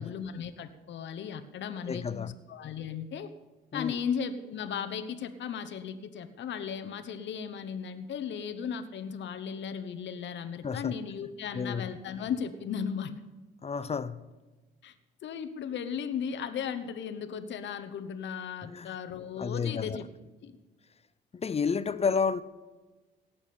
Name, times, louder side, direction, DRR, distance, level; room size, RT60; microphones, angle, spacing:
voice 1, 0.0-3.3 3.7-13.1 14.8-15.0 15.2-20.1 20.4-20.6, left 7 dB, 65° left, 9 dB, 1.0 m, -36 dB
voice 2, 1.9-2.3 3.7-4.0 10.6-10.9 11.5-11.9 13.6-14.2 18.6-19.0 19.4-20.0 21.3-22.4, left 5 dB, 30° left, 16 dB, 0.6 m, -31 dB
17.5 x 7.2 x 8.6 m, 1.2 s
cardioid pair, 90°, 20 cm